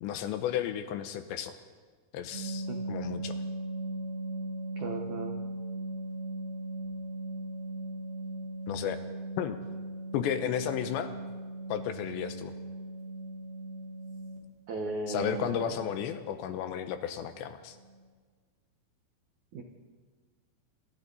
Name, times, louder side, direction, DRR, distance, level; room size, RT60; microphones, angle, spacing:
voice 1, 0.0-1.5 2.1-3.4 8.7-9.0 9.4-9.6 10.1-11.1 11.7-12.5 15.1-17.8, left 9 dB, 75° left, 9 dB, 2.9 m, -33 dB
sound 1, 2.3-14.4 16.3-16.4 16.7-16.9 17.3-17.4 17.7-18.0, right 1 dB, 45° left, 5.7 m, -38 dB
voice 2, 4.8-5.3 14.7-15.8 19.5-19.6, right 3 dB, 75° right, 2 dB, 1.7 m, -36 dB
27.0 x 26.0 x 4.1 m, 1.5 s
omnidirectional pair, 5.8 m